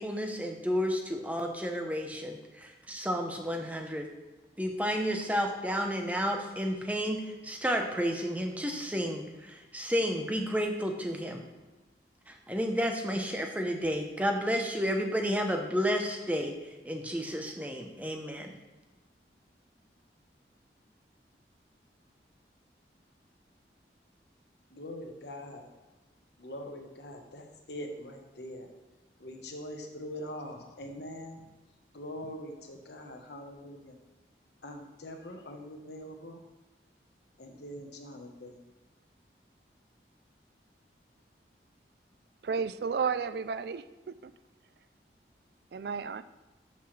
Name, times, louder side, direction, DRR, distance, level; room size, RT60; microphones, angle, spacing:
voice 1, 0.0-4.1 4.6-11.4 12.3-16.5 16.8-18.6, equal, 10° right, 3 dB, 0.8 m, -31 dB
voice 2, 24.7-25.7 26.4-28.7 29.2-31.4 31.9-34.0 34.6-36.4 37.4-38.6, left 1 dB, 75° left, 3 dB, 1.2 m, -43 dB
voice 3, 42.4-44.3 45.7-46.2, right 5 dB, 65° right, 14 dB, 0.4 m, -32 dB
12.0 x 5.9 x 3.3 m, 1.1 s
head